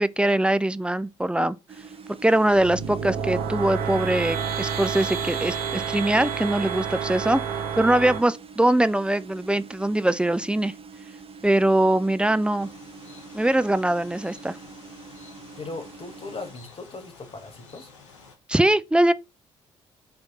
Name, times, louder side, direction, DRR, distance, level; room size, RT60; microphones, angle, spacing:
voice 1, 0.0-1.6 2.2-10.7 11.4-12.7 13.3-14.6 18.5-19.1, right 1 dB, 5° right, 0.5 m, -22 dB
sound 1, 1.7-16.5, right 5 dB, 40° right, 1.3 m, -45 dB
sound 2, 2.5-8.2, right 6 dB, 70° right, 1.3 m, -29 dB
sound 3, 12.6-18.4, left 4 dB, 85° left, 1.2 m, -50 dB
voice 2, 15.6-17.9, left 3 dB, 35° left, 1.8 m, -38 dB
9.0 x 3.5 x 4.1 m
figure-of-eight pair, 45°, 16 cm